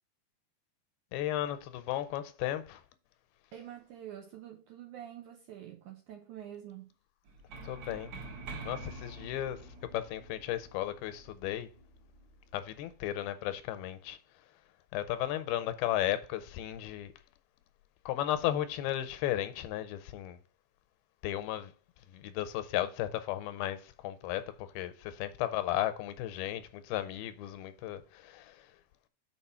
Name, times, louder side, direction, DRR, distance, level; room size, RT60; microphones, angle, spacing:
voice 1, 1.1-2.8 7.6-8.1 8.7-11.7 12.5-14.2 14.9-17.1 18.1-20.4 21.2-21.7 22.1-28.7, left 13 dB, 85° left, 2.5 m, -35 dB
voice 2, 3.5-6.9, right 11 dB, 80° right, 1.8 m, -47 dB
sound 1, 7.3-12.9, right 2 dB, 55° right, 2.1 m, -47 dB
5.9 x 4.6 x 5.6 m
omnidirectional pair, 4.3 m